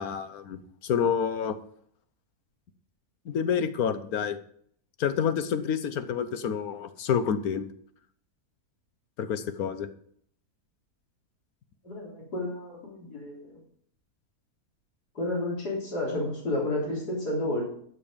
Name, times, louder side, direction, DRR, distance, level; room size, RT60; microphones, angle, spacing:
voice 1, 0.0-1.5 3.2-4.4 5.0-7.7 9.2-9.9, left 7 dB, 70° left, 11 dB, 1.4 m, -28 dB
voice 2, 11.8-13.5 15.2-17.6, left 1 dB, 90° left, -3 dB, 4.1 m, -31 dB
12.5 x 7.1 x 5.1 m, 0.63 s
omnidirectional pair, 1.7 m